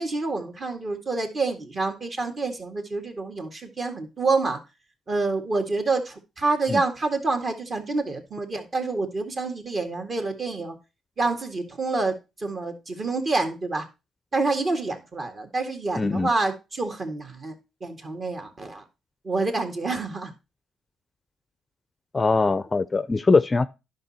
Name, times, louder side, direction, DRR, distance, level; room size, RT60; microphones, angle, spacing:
voice 1, 0.0-4.6 5.1-10.8 11.2-13.9 14.3-17.5 17.8-18.8 19.2-20.3, right 3 dB, 40° right, 2.1 m, -27 dB
voice 2, 16.0-16.3 22.1-23.7, left 3 dB, 25° left, 0.5 m, -21 dB
10.5 x 5.5 x 4.2 m
cardioid pair, 90°, 0 cm